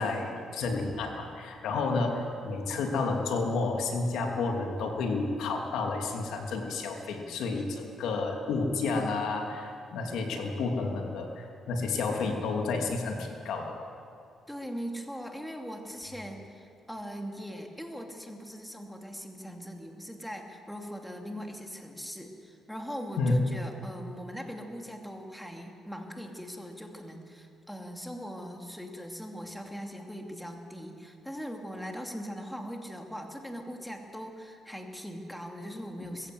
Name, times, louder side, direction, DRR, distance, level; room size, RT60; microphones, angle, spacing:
voice 1, 0.0-13.8 23.2-23.4, left 3 dB, 85° left, 2 dB, 2.7 m, -30 dB
voice 2, 14.5-36.3, equal, 5° left, 2 dB, 2.6 m, -40 dB
21.5 x 15.5 x 8.0 m, 2.5 s
cardioid pair, 90°, 0 cm